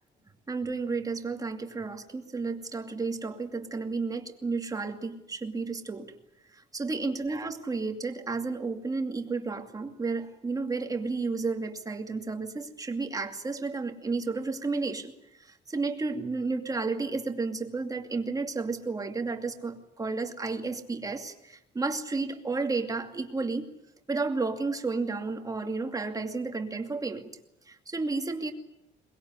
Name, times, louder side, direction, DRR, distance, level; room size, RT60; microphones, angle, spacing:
voice 1, 0.5-6.1 6.5-15.1 15.4-23.7 24.1-27.3 27.7-28.5, right 3 dB, 20° right, 5 dB, 2.5 m, -32 dB
22.5 x 21.0 x 9.6 m, 0.82 s
cardioid pair, 125°, 19 cm